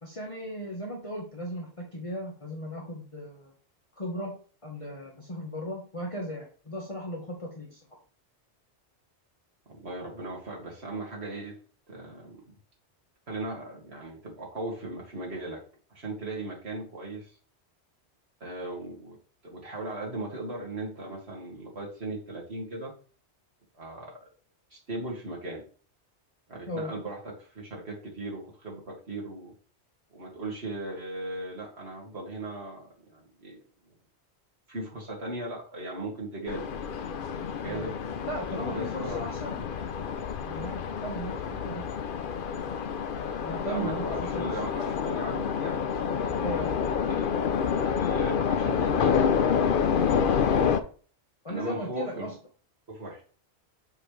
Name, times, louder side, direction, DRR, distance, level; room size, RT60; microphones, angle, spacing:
voice 1, 0.0-3.5 4.0-4.3 4.6-7.8 26.7-26.9 37.6-37.9 38.2-39.6 40.1-41.3 41.6-41.8 43.4-44.5 46.4-46.8 51.4-52.3, equal, 30° left, -2 dB, 1.4 m, -36 dB
voice 2, 9.7-11.6 11.9-12.6 13.3-15.6 15.9-17.3 18.4-19.2 19.4-22.9 23.7-24.2 24.7-25.6 26.5-29.5 30.1-33.6 34.7-36.7 37.6-39.3 43.6-46.4 47.1-47.3 48.0-49.6 50.2-50.5 51.5-52.3 52.9-53.2, right 2 dB, 65° right, -2 dB, 2.5 m, -38 dB
sound 1, 36.5-50.8, left 7 dB, 55° left, 0.8 m, -28 dB
6.9 x 5.8 x 3.3 m, 0.40 s
omnidirectional pair, 1.2 m